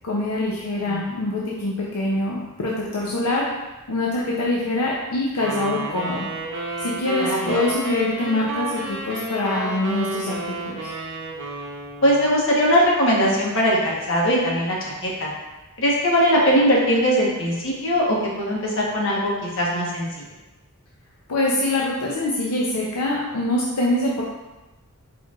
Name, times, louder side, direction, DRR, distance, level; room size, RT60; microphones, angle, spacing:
voice 1, 0.0-3.5 3.9-6.3 6.8-10.9 21.3-24.2, left 2 dB, 85° left, -3 dB, 0.6 m, -24 dB
sound 1, 5.4-12.3, right 2 dB, 55° right, 0.7 m, -31 dB
voice 2, 7.2-7.7 12.0-15.3 15.8-20.0, equal, 60° left, -4 dB, 1.1 m, -20 dB
4.5 x 4.4 x 2.4 m, 1.1 s
head